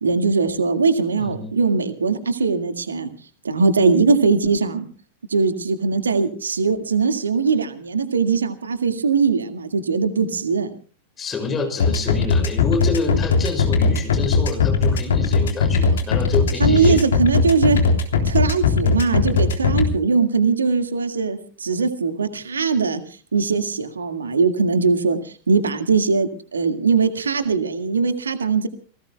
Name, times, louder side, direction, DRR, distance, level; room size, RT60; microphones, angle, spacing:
voice 1, 0.0-3.1 3.4-4.9 5.3-10.7 16.6-17.8 18.2-23.0 23.3-28.7, right 4 dB, 70° right, 9 dB, 1.8 m, -20 dB
voice 2, 1.2-1.5 11.2-17.0, left 4 dB, 20° left, 5 dB, 6.5 m, -27 dB
sound 1, 11.8-19.8, left 5 dB, 65° left, 3.4 m, -18 dB
30.0 x 18.5 x 2.3 m, 0.39 s
figure-of-eight pair, 90°, 0 cm